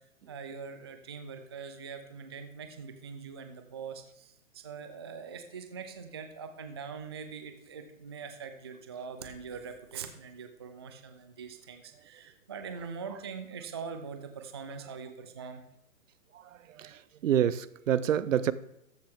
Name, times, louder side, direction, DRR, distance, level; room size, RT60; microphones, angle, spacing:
voice 1, 0.3-15.6, right 6 dB, 20° right, 0.4 m, -43 dB
voice 2, 16.3-18.5, right 10 dB, 70° right, 0.7 m, -28 dB
14.0 x 7.3 x 3.6 m
hypercardioid pair, 155°, 41 cm